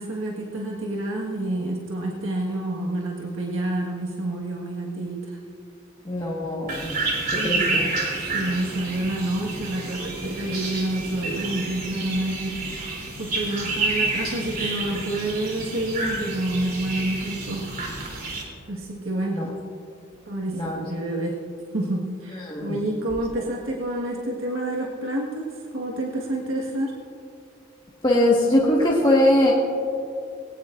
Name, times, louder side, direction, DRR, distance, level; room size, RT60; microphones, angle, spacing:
voice 1, 0.0-5.4 7.3-7.8 8.2-12.5 12.8-17.7 18.7-19.5 20.2-21.3 21.7-26.9, right 1 dB, 80° right, -3 dB, 1.6 m, -28 dB
voice 2, 6.0-7.0 7.3-7.8 19.4-19.5 20.5-20.8 22.5-22.7 28.0-29.5, left 1 dB, 25° left, -5 dB, 1.5 m, -21 dB
sound 1, 6.7-18.4, right 3 dB, 45° right, 3.3 m, -29 dB
21.0 x 18.0 x 2.6 m, 2.5 s
head